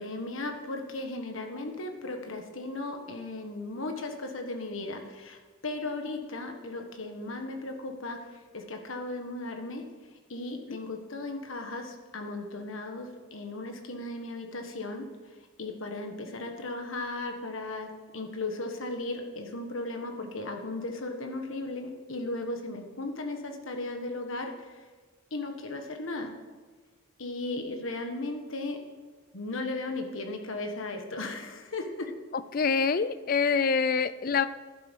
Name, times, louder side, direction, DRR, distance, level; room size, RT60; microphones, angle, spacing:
voice 1, 0.0-9.8 10.3-15.1 15.6-24.8 25.3-26.3 27.2-28.8 29.3-32.1, left 2 dB, 85° left, 4 dB, 1.5 m, -36 dB
voice 2, 32.5-34.5, left 5 dB, 45° left, 15 dB, 0.4 m, -25 dB
11.0 x 10.5 x 5.4 m, 1.4 s
head